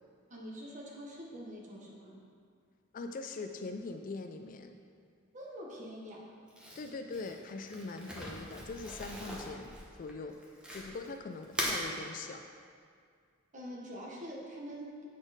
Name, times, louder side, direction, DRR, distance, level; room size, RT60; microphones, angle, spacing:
voice 1, 0.3-2.2 5.3-6.3 13.5-15.1, equal, 35° right, -3 dB, 1.2 m, -45 dB
voice 2, 2.9-4.8 6.8-10.4 10.7-12.4, left 3 dB, 40° left, 6 dB, 0.3 m, -42 dB
Crumpling crinkling, 6.5-11.1 11.4-11.8, equal, 5° right, 0.9 m, -40 dB
7.9 x 4.2 x 5.0 m, 2.2 s
head